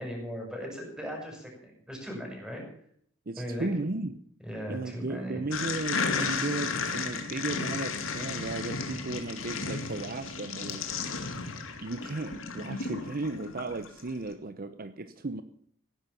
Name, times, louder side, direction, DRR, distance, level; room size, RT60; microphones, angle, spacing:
voice 1, 0.0-2.6 3.4-3.7 4.4-5.4, equal, 5° right, 0 dB, 6.3 m, -38 dB
voice 2, 3.3-4.2 4.7-10.9 11.8-15.4, right 2 dB, 45° right, 11 dB, 0.8 m, -35 dB
sound 1, 5.5-14.1, left 4 dB, 90° left, 2.2 m, -34 dB
17.0 x 10.5 x 7.1 m, 0.63 s
head